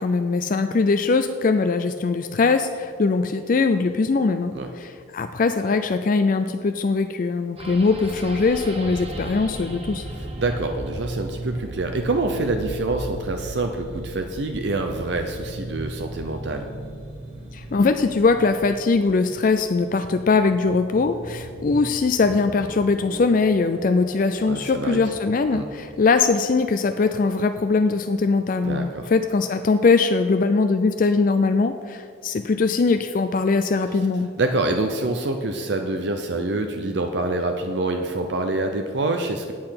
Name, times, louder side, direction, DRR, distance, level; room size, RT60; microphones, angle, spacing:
voice 1, 0.0-10.1 17.5-34.3, left 4 dB, 45° left, 8 dB, 0.4 m, -21 dB
sound 1, 7.6-26.2, right 1 dB, 30° right, 1.0 m, -37 dB
voice 2, 10.1-16.7 24.5-25.0 25.5-25.7 28.6-29.1 34.4-39.5, right 2 dB, 60° right, 5 dB, 0.6 m, -26 dB
8.7 x 8.6 x 5.8 m, 2.3 s
head